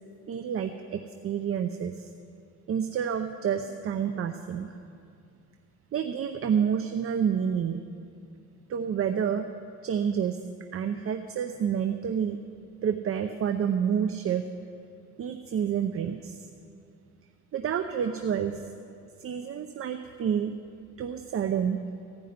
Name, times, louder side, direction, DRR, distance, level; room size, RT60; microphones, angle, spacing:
voice 1, 0.3-2.1 2.7-4.8 5.9-7.8 8.7-9.5 9.8-10.4 10.7-12.4 12.8-14.4 15.2-16.4 17.5-18.6 19.2-20.6 21.0-21.8, right 8 dB, 50° right, 8 dB, 0.7 m, -29 dB
15.5 x 5.4 x 9.4 m, 2.4 s
cardioid pair, 90°, 30 cm